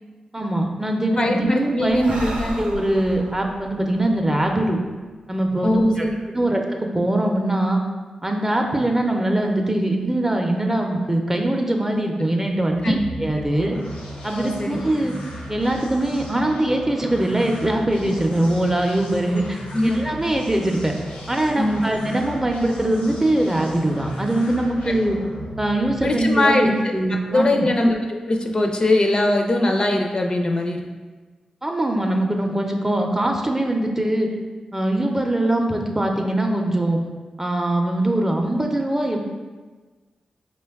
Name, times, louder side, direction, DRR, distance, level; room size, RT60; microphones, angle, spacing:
voice 1, 0.3-2.2 2.6-4.8 5.3-6.0 6.3-7.8 8.2-13.8 14.2-15.1 15.5-20.9 21.3-25.2 25.6-27.7 31.6-34.3 34.7-37.0 37.4-39.2, right 1 dB, 20° right, 2 dB, 0.5 m, -22 dB
voice 2, 1.2-2.6 5.6-6.5 12.8-13.0 14.3-15.2 19.7-20.0 21.6-21.8 24.9-25.0 26.0-26.9 27.3-28.0 28.3-30.8, left 1 dB, 40° left, 2 dB, 0.4 m, -21 dB
Breathing, 1.9-5.4, right 1 dB, 75° right, 0.5 m, -35 dB
sound 1, 12.6-26.4, equal, 85° left, 0.8 m, -36 dB
4.9 x 2.2 x 3.4 m, 1.3 s
cardioid pair, 50°, 2 cm